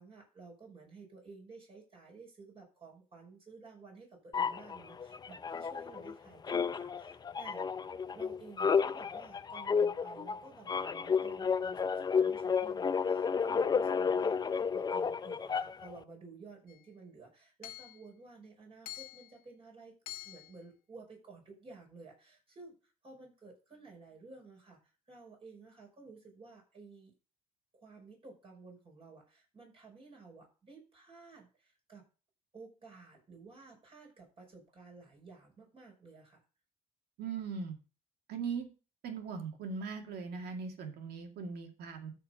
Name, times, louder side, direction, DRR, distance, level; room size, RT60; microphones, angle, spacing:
voice 1, 0.0-7.7 8.1-20.0 20.2-27.1 27.7-32.1 32.5-36.4, right 3 dB, 35° right, 0 dB, 5.9 m, -53 dB
sound 1, 4.3-6.2 6.4-16.0, left 6 dB, 25° left, 0.5 m, -32 dB
Hammer / Chink clink, 16.7-16.8 17.6-18.0 18.9-19.3 20.1-20.5, left 13 dB, 70° left, 1.5 m, -46 dB
voice 2, 37.2-37.8 38.3-38.7 39.0-42.1, right 5 dB, 70° right, 4 dB, 2.2 m, -39 dB
13.0 x 4.7 x 5.3 m, 0.34 s
cardioid pair, 110°, 17 cm